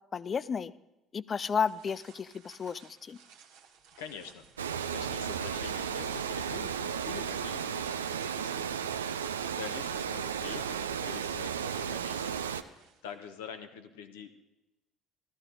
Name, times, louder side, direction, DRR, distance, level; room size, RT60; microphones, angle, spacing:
voice 1, 0.1-0.7 1.1-3.2, left 6 dB, 40° left, 18 dB, 0.4 m, -32 dB
sound 1, 1.4-13.3, right 7 dB, 70° right, 1.3 m, -58 dB
voice 2, 4.0-14.3, left 6 dB, 75° left, 8 dB, 0.9 m, -46 dB
Water, 4.6-12.6, right 7 dB, 85° right, 0.4 m, -34 dB
13.5 x 13.0 x 3.9 m, 0.96 s
hypercardioid pair, 55°, 0 cm